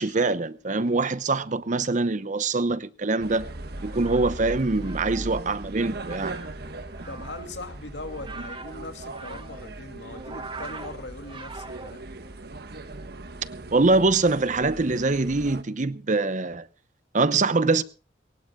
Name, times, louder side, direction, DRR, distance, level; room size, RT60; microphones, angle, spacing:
voice 1, 0.0-3.5 3.8-6.4 13.5-16.7 17.1-17.8, right 3 dB, 45° right, 0.9 m, -24 dB
sound 1, 3.2-15.6, right 2 dB, 65° right, 1.3 m, -39 dB
sound 2, 3.6-12.3, right 3 dB, 30° right, 1.7 m, -43 dB
voice 2, 7.1-12.0, left 2 dB, 90° left, 2.6 m, -40 dB
22.5 x 19.0 x 2.3 m
head